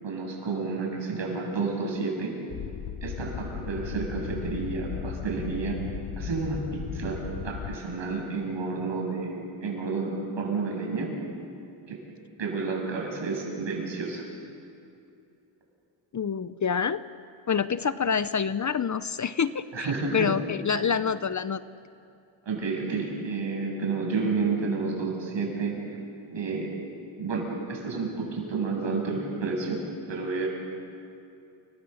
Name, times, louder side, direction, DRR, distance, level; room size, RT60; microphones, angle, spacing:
voice 1, 0.0-2.3 3.0-5.8 6.2-11.1 11.9-12.0 12.4-14.2 19.7-20.3 20.7-20.8 22.4-25.8 26.3-26.7 27.2-30.5, right 4 dB, 65° right, -1 dB, 8.0 m, -30 dB
sound 1, 2.5-7.8, left 9 dB, 80° left, 1.2 m, -36 dB
voice 2, 16.1-17.0 17.5-19.9 20.1-21.6, left 6 dB, 40° left, 14 dB, 0.7 m, -27 dB
29.5 x 24.5 x 7.2 m, 2.6 s
cardioid pair, 100°, 47 cm